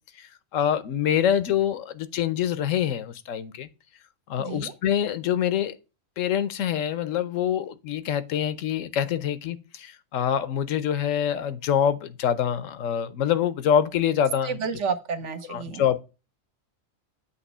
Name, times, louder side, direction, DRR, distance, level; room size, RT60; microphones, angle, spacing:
voice 1, 0.5-3.7 4.3-5.8 6.2-14.6 15.5-16.0, left 9 dB, 80° left, 1.0 m, -25 dB
voice 2, 4.4-4.7 14.4-15.8, right 6 dB, 65° right, 1.1 m, -30 dB
8.1 x 3.0 x 6.0 m
omnidirectional pair, 1.3 m